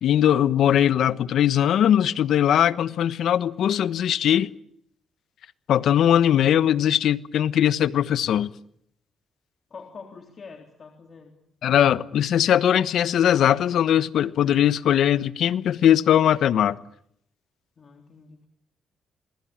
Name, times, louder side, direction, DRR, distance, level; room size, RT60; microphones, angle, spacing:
voice 1, 0.0-4.5 5.7-8.5 11.6-16.8, left 10 dB, 70° left, 1.1 m, -20 dB
voice 2, 9.7-11.3 17.8-18.5, left 5 dB, 45° left, 3.6 m, -45 dB
27.5 x 21.0 x 8.8 m
cardioid pair, 90°, 0 cm